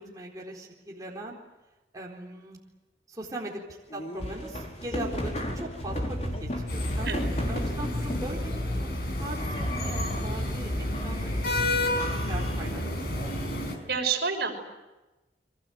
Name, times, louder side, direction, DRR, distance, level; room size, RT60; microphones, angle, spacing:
voice 1, 0.0-1.4 1.9-2.6 3.1-3.6 3.9-7.2 7.5-8.9 9.2-10.7 11.0-13.1, right 1 dB, 20° right, -2 dB, 4.1 m, -40 dB
sound 1, 3.9-8.4 9.2-10.5 10.9-11.5 12.0-13.8, equal, 40° left, 5.2 m, -36 dB
sound 2, 5.8-12.5, left 1 dB, 85° left, 4.5 m, -34 dB
sound 3, 6.7-13.8, left 1 dB, 65° left, 5.6 m, -31 dB
voice 2, 13.9-14.5, right 5 dB, 65° right, 3 dB, 5.9 m, -28 dB
30.0 x 24.0 x 8.0 m, 1.1 s
head